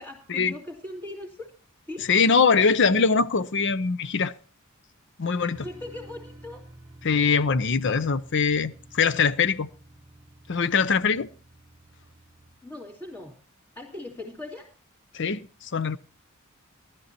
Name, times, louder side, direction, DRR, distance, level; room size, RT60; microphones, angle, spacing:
voice 1, 0.0-1.5 1.9-2.1 5.6-6.6 12.6-13.4 13.8-14.7, left 2 dB, 15° left, 2.4 m, -39 dB
voice 2, 2.1-4.3 5.2-5.6 7.0-9.7 10.5-11.3 15.1-16.0, left 5 dB, 60° left, 0.7 m, -22 dB
sound 1, 5.5-12.6, right 1 dB, 15° right, 1.0 m, -50 dB
18.5 x 13.0 x 2.9 m
head